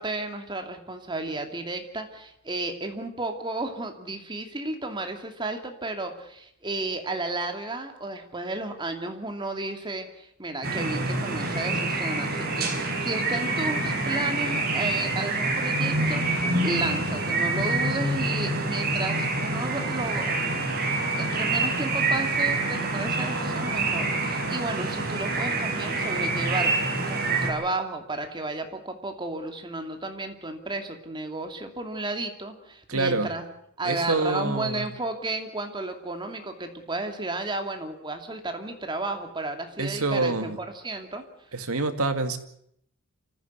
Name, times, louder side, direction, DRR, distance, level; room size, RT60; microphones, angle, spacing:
voice 1, 0.0-20.4 21.2-33.4 33.8-41.2, right 2 dB, 20° right, 5 dB, 2.6 m, -33 dB
sound 1, 10.6-27.5, right 2 dB, 45° right, 5.1 m, -26 dB
voice 2, 32.9-33.3 33.8-34.9 39.8-40.6 41.5-42.4, right 3 dB, 75° right, 7 dB, 2.2 m, -26 dB
27.0 x 15.0 x 8.1 m, 0.70 s
head